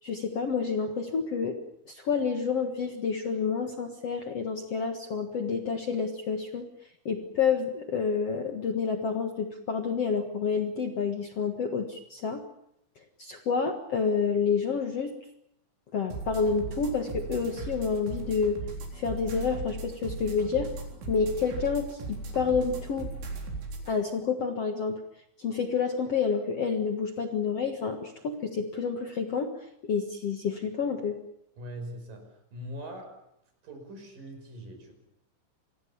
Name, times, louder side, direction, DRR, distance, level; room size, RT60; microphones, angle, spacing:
voice 1, 0.0-6.7 7.0-12.4 13.2-15.1 15.9-18.6 18.9-20.7 21.1-23.1 23.9-25.0 25.4-29.6 29.8-31.2, left 5 dB, 75° left, 5 dB, 1.4 m, -29 dB
sound 1, 16.1-23.9, right 3 dB, 85° right, 6.5 m, -37 dB
voice 2, 31.6-33.1 33.6-34.9, equal, 45° right, 5 dB, 7.0 m, -42 dB
27.0 x 21.5 x 7.1 m, 0.76 s
omnidirectional pair, 5.5 m